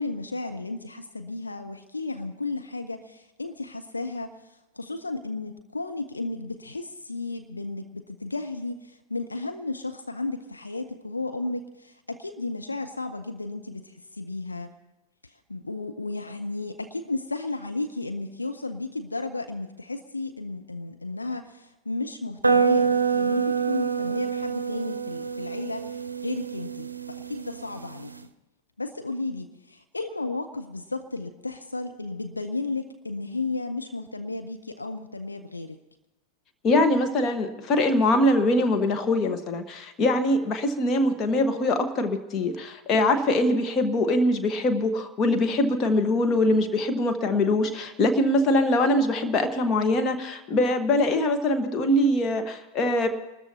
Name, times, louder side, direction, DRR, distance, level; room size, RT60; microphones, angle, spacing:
voice 1, 0.0-4.4 4.7-14.7 15.5-28.1 28.8-35.8, left 3 dB, 80° left, 7 dB, 0.9 m, -33 dB
sound 1, 22.4-28.2, right 6 dB, 80° right, 0.6 m, -26 dB
voice 2, 36.6-53.1, left 1 dB, 30° left, 7 dB, 1.4 m, -23 dB
28.0 x 13.5 x 2.9 m, 0.97 s
figure-of-eight pair, 90°, 0 cm